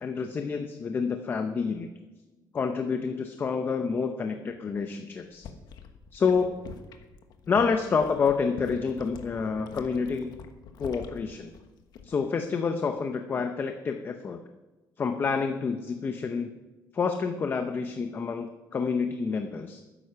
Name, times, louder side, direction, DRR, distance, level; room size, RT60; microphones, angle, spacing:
voice 1, 0.0-1.9 2.5-5.4 6.1-6.6 7.5-10.3 10.8-11.5 12.0-14.4 15.0-16.5 16.9-19.8, left 5 dB, 30° left, 6 dB, 0.7 m, -28 dB
sound 1, 5.2-12.3 12.6-13.0, left 6 dB, 65° left, 1.3 m, -46 dB
12.5 x 9.9 x 5.8 m, 1.1 s
cardioid pair, 175°, 8 cm